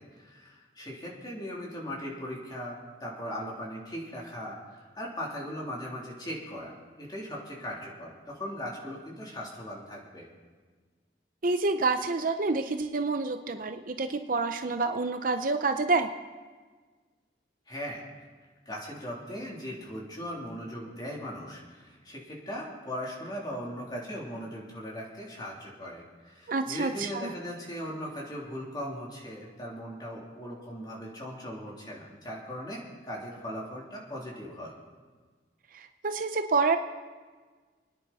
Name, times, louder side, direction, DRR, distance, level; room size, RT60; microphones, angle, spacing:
voice 1, 0.0-6.7 7.0-10.3 17.7-18.3 18.6-34.7, equal, 25° left, -3 dB, 3.3 m, -39 dB
voice 2, 11.4-16.1 26.5-27.3 35.7-36.8, right 3 dB, 50° right, 7 dB, 0.6 m, -28 dB
29.5 x 10.0 x 4.2 m, 1.4 s
head